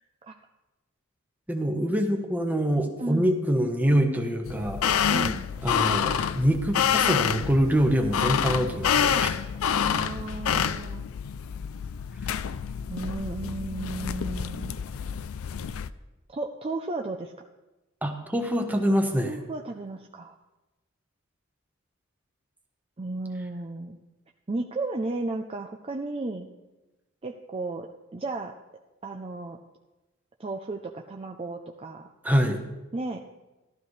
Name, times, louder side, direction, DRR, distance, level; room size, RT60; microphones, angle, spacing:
voice 1, 1.5-5.1 5.6-9.4 18.0-19.4 32.2-32.6, equal, 10° right, 4 dB, 1.1 m, -25 dB
voice 2, 3.0-3.4 5.1-5.5 9.6-11.1 12.9-14.8 16.3-17.3 19.3-20.3 23.0-24.0 24.5-26.5 27.2-28.5 29.0-29.6 30.4-32.1 32.9-33.2, right 2 dB, 25° right, 2 dB, 0.5 m, -34 dB
sound 1, 4.5-15.9, left 8 dB, 70° left, 0.4 m, -27 dB
14.5 x 12.0 x 3.3 m, 1.1 s
head